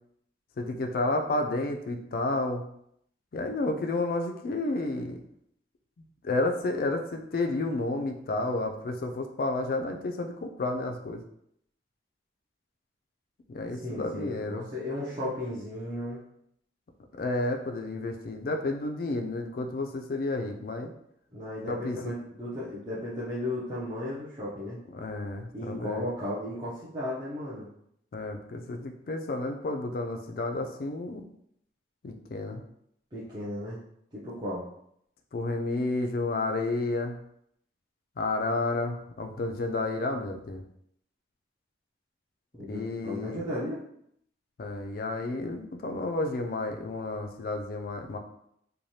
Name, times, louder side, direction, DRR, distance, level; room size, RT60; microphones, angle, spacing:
voice 1, 0.6-2.6 3.3-5.2 6.2-11.2 13.5-14.7 17.2-20.9 21.7-22.1 24.9-26.1 28.1-31.2 32.0-32.6 35.3-37.2 38.2-40.6 42.6-43.4 44.6-48.2, left 2 dB, 50° left, 4 dB, 0.3 m, -31 dB
voice 2, 13.6-16.2 21.3-24.8 25.5-27.7 33.1-33.8 34.1-34.6 42.5-43.8, left 1 dB, 20° right, -10 dB, 0.5 m, -35 dB
3.1 x 2.2 x 2.7 m, 0.72 s
head